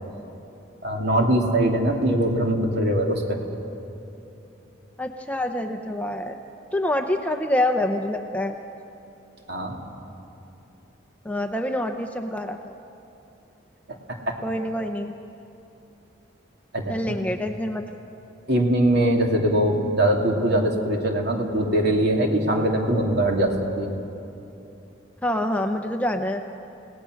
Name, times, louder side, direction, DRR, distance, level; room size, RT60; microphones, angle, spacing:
voice 1, 0.8-3.4 9.5-9.8 16.7-16.9 18.5-23.5 23.8-23.9, right 1 dB, 55° right, 1 dB, 2.8 m, -22 dB
voice 2, 5.0-6.4 6.7-8.5 11.2-12.7 14.4-15.1 16.9-18.0 25.2-26.4, left 1 dB, 5° left, 5 dB, 0.7 m, -26 dB
30.0 x 17.5 x 6.5 m, 2.9 s
head